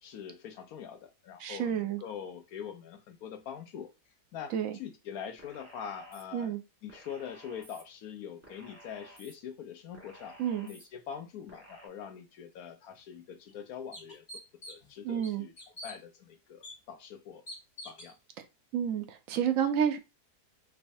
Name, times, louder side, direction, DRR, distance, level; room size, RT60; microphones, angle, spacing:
voice 1, 0.0-3.9 4.3-6.6 6.8-10.4 10.7-14.3 14.7-15.5 15.8-17.4 17.8-18.2, left 8 dB, 70° left, 1.1 m, -43 dB
voice 2, 1.4-2.0 4.5-4.8 6.3-6.6 10.4-10.7 15.0-15.4 18.7-20.0, right 8 dB, 70° right, 0.8 m, -30 dB
sound 1, 5.4-6.2 6.9-7.8 8.4-9.3 9.9-10.8 11.5-11.9, right 1 dB, 10° right, 1.1 m, -53 dB
sound 2, 12.9-13.0 13.5-13.6 13.9-14.9 15.2-16.0 16.6-16.7 17.5-18.1, left 1 dB, 35° left, 1.4 m, -45 dB
3.4 x 3.2 x 2.6 m
omnidirectional pair, 1.7 m